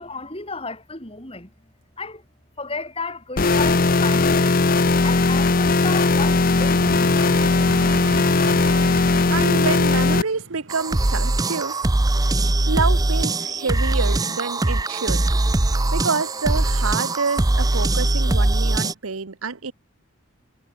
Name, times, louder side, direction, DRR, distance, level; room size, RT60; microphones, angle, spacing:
voice 1, 0.0-1.5 2.0-2.2 2.6-4.6 5.0-7.6, left 3 dB, 25° left, 5.8 m, -33 dB
sound 1, 3.4-10.2, left 3 dB, 40° left, 0.7 m, -18 dB
Vehicle, 5.5-13.5 14.1-14.3, right 2 dB, 60° right, 3.4 m, -39 dB
voice 2, 9.0-11.8 12.7-15.6 15.9-19.7, right 4 dB, 85° right, 1.0 m, -28 dB
sound 2, 10.7-18.9, right 2 dB, 15° right, 0.6 m, -21 dB
head